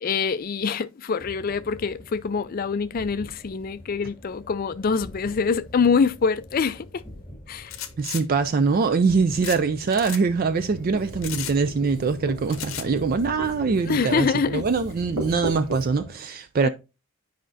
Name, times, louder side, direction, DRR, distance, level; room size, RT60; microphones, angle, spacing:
voice 1, 0.0-7.0 7.5-7.7 13.9-14.6 16.6-16.7, left 5 dB, 40° left, 0.3 m, -25 dB
sound 1, 1.2-16.1, left 1 dB, 10° left, 2.2 m, -44 dB
sound 2, 7.7-8.2 9.4-9.6 9.9-10.2 11.2-11.6 12.5-12.9, left 11 dB, 60° left, 0.7 m, -34 dB
voice 2, 8.0-16.7, right 4 dB, 40° right, 0.3 m, -23 dB
Writing, 10.3-15.9, right 1 dB, 80° right, 2.6 m, -37 dB
9.8 x 5.0 x 2.6 m
head